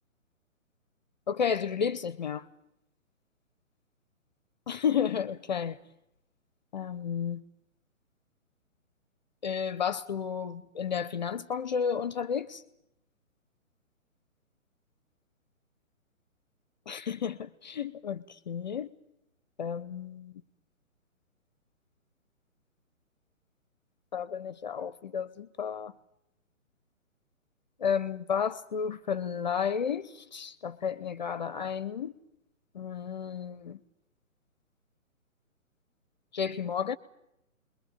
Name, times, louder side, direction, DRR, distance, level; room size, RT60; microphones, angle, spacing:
voice 1, 1.3-2.5 4.7-5.8 6.7-7.4 9.4-12.6 16.9-18.9 19.6-20.4 24.1-25.9 27.8-32.1 32.7-33.8 36.3-37.0, left 7 dB, 30° left, 1.0 m, -32 dB
28.5 x 22.0 x 9.0 m
figure-of-eight pair, 135°, 42 cm